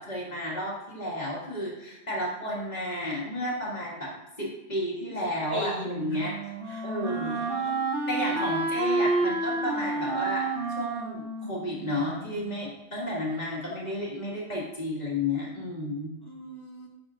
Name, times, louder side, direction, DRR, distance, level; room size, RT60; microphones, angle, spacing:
voice 1, 0.0-4.1 4.4-6.3 6.8-7.4 8.1-16.1, left 1 dB, 35° left, -5 dB, 2.1 m, -32 dB
voice 2, 5.5-6.2 6.7-7.8 16.2-16.9, left 1 dB, 20° left, -1 dB, 1.2 m, -40 dB
Wind instrument woodwind instrument, 5.7-12.5, right 2 dB, 50° right, 1.0 m, -30 dB
10.5 x 5.7 x 2.5 m, 0.98 s
omnidirectional pair, 1.3 m